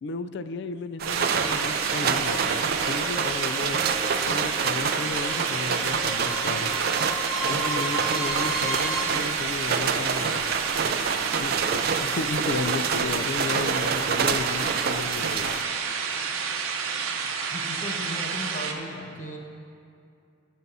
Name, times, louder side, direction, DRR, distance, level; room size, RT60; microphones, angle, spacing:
voice 1, 0.0-3.8 4.3-6.7 7.5-10.4 11.4-15.6, left 4 dB, 55° left, 12 dB, 0.4 m, -34 dB
sound 1, 1.0-15.6, right 6 dB, 45° right, 0.4 m, -28 dB
sound 2, 1.1-18.7, right 6 dB, 90° right, 0.8 m, -30 dB
sound 3, 3.0-9.0, right 1 dB, ahead, 1.3 m, -35 dB
voice 2, 17.5-19.4, equal, 40° left, 0 dB, 1.1 m, -36 dB
17.5 x 6.8 x 2.7 m, 2.5 s
head